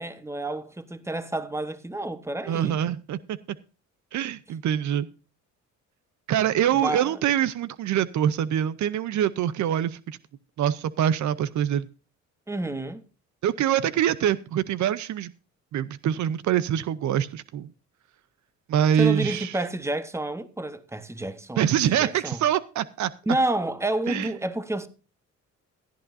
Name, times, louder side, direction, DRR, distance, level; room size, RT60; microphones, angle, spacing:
voice 1, 0.0-2.8 6.7-7.2 12.5-13.0 19.0-21.7 22.0-22.4 23.3-24.9, right 1 dB, 10° right, 1.2 m, -29 dB
voice 2, 2.5-3.4 4.1-5.1 6.3-10.2 10.6-11.9 13.4-15.3 15.7-17.7 18.7-19.5 21.6-23.1 24.1-24.3, right 10 dB, 70° right, 0.7 m, -24 dB
16.5 x 11.5 x 2.6 m
cardioid pair, 90°, 30 cm